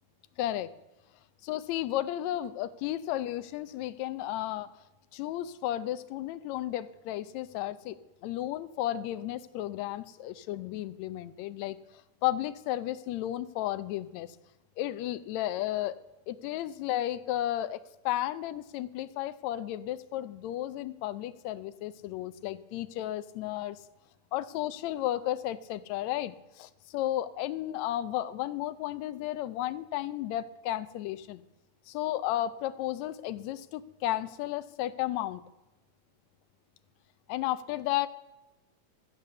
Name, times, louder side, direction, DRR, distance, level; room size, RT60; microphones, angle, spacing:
voice 1, 0.4-0.7 1.4-4.7 5.1-8.0 8.2-11.8 12.2-14.3 14.8-16.0 16.3-23.8 24.3-31.4 31.9-35.4 37.3-38.1, left 13 dB, 80° left, 13 dB, 1.8 m, -33 dB
14.0 x 8.3 x 6.8 m, 1.0 s
omnidirectional pair, 3.4 m